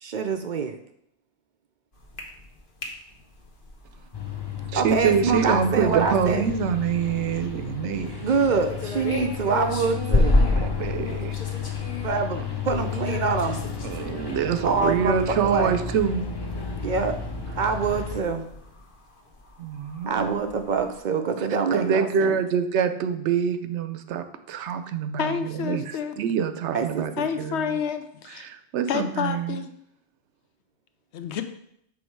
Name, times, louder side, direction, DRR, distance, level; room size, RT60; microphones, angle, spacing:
voice 1, 0.0-0.8 4.7-6.4 8.2-10.4 12.0-13.6 14.6-15.7 16.8-17.1 17.6-18.5 20.1-22.4 26.7-27.1, right 5 dB, 55° right, 6 dB, 0.5 m, -25 dB
sound 1, 1.9-21.0, left 3 dB, 55° left, 1.1 m, -41 dB
sound 2, 4.1-18.2, left 3 dB, 30° left, 0.5 m, -29 dB
voice 2, 4.7-8.3 10.5-11.3 13.8-16.2 19.6-20.5 21.7-27.8 28.3-29.6, right 7 dB, 85° right, 10 dB, 0.9 m, -26 dB
voice 3, 25.2-26.2 27.2-28.5 28.9-29.7 31.1-31.4, left 7 dB, 80° left, 8 dB, 0.9 m, -29 dB
6.3 x 3.5 x 4.5 m, 0.73 s
omnidirectional pair, 1.1 m